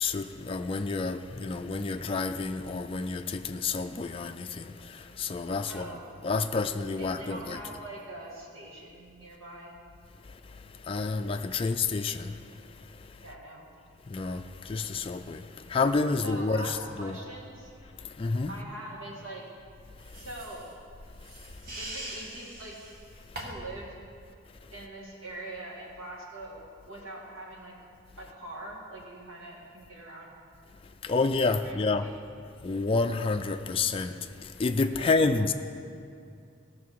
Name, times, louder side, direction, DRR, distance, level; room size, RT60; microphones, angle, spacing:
voice 1, 0.0-4.6 5.2-5.9 6.2-7.6 10.9-12.3 14.1-14.4 14.7-15.4 15.7-17.2 18.2-18.5 31.1-32.0 32.6-34.1 34.6-35.5, left 3 dB, 25° left, 0.3 m, -28 dB
voice 2, 5.7-6.1 7.0-9.8 13.2-13.7 16.2-17.7 18.5-19.4 20.1-20.7 21.8-22.8 23.4-23.9 24.7-27.7 28.2-30.3 31.6-32.1 35.0-35.4, right 1 dB, 85° right, 2.1 m, -43 dB
sound 1, 20.0-23.8, right 1 dB, 45° right, 1.5 m, -43 dB
17.0 x 6.1 x 4.7 m
head